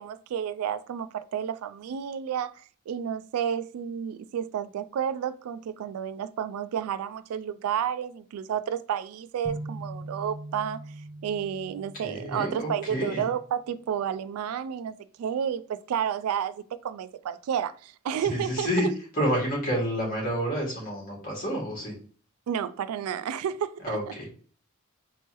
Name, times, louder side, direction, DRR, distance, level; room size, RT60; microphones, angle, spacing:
voice 1, 0.0-10.8 11.2-18.7 22.5-24.1, right 8 dB, 80° right, 0.3 m, -31 dB
sound 1, 9.4-13.5, right 2 dB, 20° right, 0.7 m, -41 dB
voice 2, 12.0-13.3 18.2-18.9 19.1-21.9 23.8-24.3, equal, 40° left, 2.1 m, -29 dB
4.3 x 3.2 x 2.9 m
head